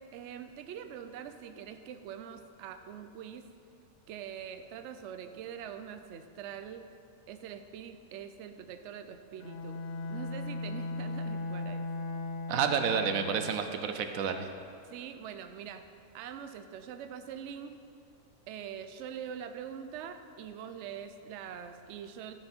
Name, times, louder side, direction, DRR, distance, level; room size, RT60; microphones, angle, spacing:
voice 1, 0.0-3.4 4.1-6.9 7.3-11.9 14.8-15.9 16.1-17.8 18.5-22.3, right 8 dB, 70° right, 8 dB, 0.8 m, -44 dB
Bowed string instrument, 9.4-13.7, left 2 dB, 55° left, 0.8 m, -37 dB
voice 2, 12.5-14.5, right 7 dB, 90° right, 7 dB, 1.1 m, -30 dB
13.0 x 6.1 x 4.3 m, 2.5 s
omnidirectional pair, 1.4 m